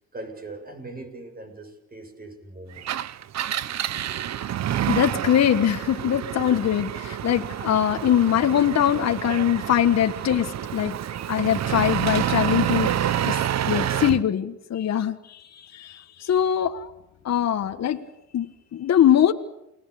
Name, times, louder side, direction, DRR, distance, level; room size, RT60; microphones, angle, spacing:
voice 1, 0.0-2.9 13.3-13.5, right 2 dB, 30° right, 6 dB, 7.7 m, -40 dB
Engine, 2.8-14.2, right 11 dB, 60° right, 1.0 m, -28 dB
voice 2, 4.9-10.9 11.3-13.3 13.7-16.9 17.2-18.0 18.3-19.3, left 10 dB, 60° left, 7 dB, 1.6 m, -22 dB
29.5 x 20.5 x 8.5 m, 0.87 s
cardioid pair, 90°, 30 cm